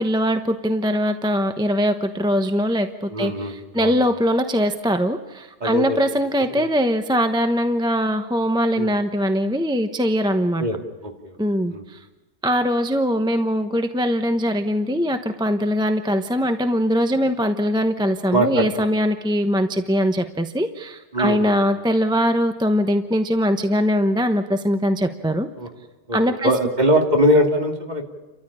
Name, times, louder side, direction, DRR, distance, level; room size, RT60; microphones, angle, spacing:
voice 1, 0.0-10.6 11.4-12.0 12.4-25.5 26.1-26.5, equal, 5° right, 7 dB, 0.9 m, -21 dB
voice 2, 3.1-4.0 5.6-6.0 6.6-6.7 8.8-8.9 10.6-10.8 11.0-11.4 11.7-11.8 18.3-18.9 21.1-21.5 25.6-25.7 26.1-26.2 26.4-28.0, equal, 40° right, 2 dB, 2.7 m, -21 dB
30.0 x 14.0 x 10.0 m, 1.1 s
omnidirectional pair, 1.1 m